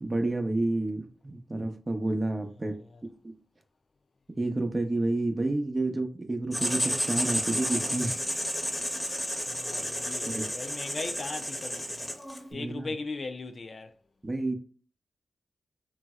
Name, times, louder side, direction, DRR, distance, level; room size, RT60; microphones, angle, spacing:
voice 1, 0.0-2.7 3.0-3.3 4.3-8.2 10.3-10.5 12.5-12.8 14.2-14.5, right 2 dB, 35° right, 0.7 m, -30 dB
voice 2, 2.6-3.0 9.5-12.1 12.5-13.9, left 3 dB, 55° left, 0.4 m, -39 dB
Writing, 6.5-12.5, equal, 10° left, 0.9 m, -31 dB
3.1 x 2.6 x 2.3 m
cardioid pair, 50°, 0 cm